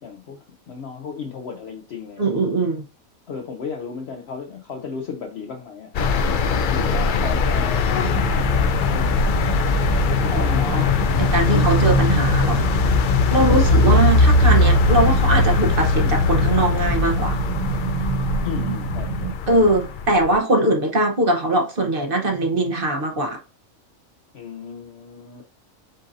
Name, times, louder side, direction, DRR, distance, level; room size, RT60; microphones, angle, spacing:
voice 1, 0.0-2.3 3.3-7.9 8.9-9.3 10.0-11.7 13.5-14.0 18.4-19.4 24.3-25.4, left 6 dB, 60° left, 0.8 m, -35 dB
voice 2, 2.2-2.9 10.3-10.9 11.2-12.7 13.3-17.4 19.5-23.4, right 1 dB, 45° right, 1.0 m, -21 dB
sound 1, 5.9-20.3, left 3 dB, 80° left, 0.4 m, -20 dB
sound 2, 8.0-19.3, right 6 dB, 70° right, 1.0 m, -27 dB
7.7 x 2.6 x 2.6 m
omnidirectional pair, 1.5 m